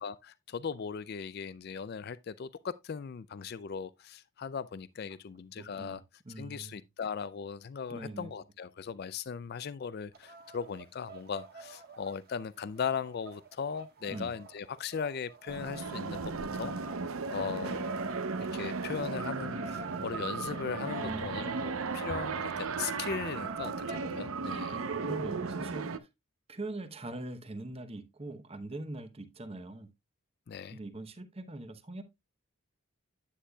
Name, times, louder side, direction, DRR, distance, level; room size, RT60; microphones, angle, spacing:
voice 1, 0.0-6.0 6.4-16.2 16.5-16.7 17.3-17.9 18.4-24.8 30.5-30.8, left 6 dB, 45° left, 0.4 m, -38 dB
voice 2, 5.6-6.7 7.9-8.3 14.1-14.3 21.0-21.7 24.7-26.1 26.5-29.9 30.7-32.0, right 2 dB, 25° right, 0.8 m, -42 dB
sound 1, 10.1-24.0, right 3 dB, 45° right, 1.3 m, -50 dB
sound 2, 15.5-26.0, right 4 dB, 75° right, 0.7 m, -35 dB
10.0 x 8.3 x 2.3 m
head